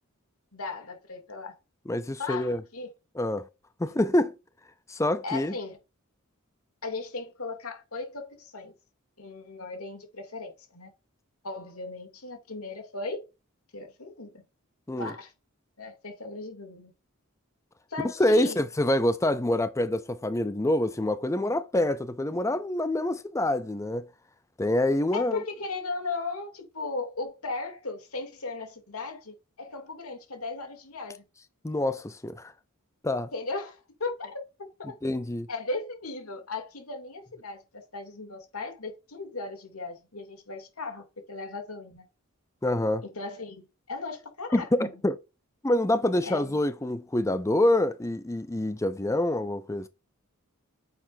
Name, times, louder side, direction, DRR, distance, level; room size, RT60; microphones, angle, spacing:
voice 1, 0.5-1.6 2.2-2.9 3.9-4.0 5.2-5.8 6.8-8.7 9.2-10.9 11.4-13.3 13.7-14.3 15.0-15.3 15.8-16.9 17.9-18.6 25.1-31.2 33.3-34.4 34.8-35.0 35.5-42.1 43.0-43.6 43.9-45.0 46.2-46.6, left 3 dB, 85° left, 2.9 m, -37 dB
voice 2, 1.9-2.6 3.2-3.4 3.8-4.3 4.9-5.5 14.9-15.1 18.2-24.0 24.6-25.4 31.6-32.5 33.0-33.3 35.0-35.5 42.6-43.0 44.5-45.2 45.6-49.9, left 1 dB, 15° left, 0.5 m, -26 dB
9.7 x 6.7 x 2.7 m
head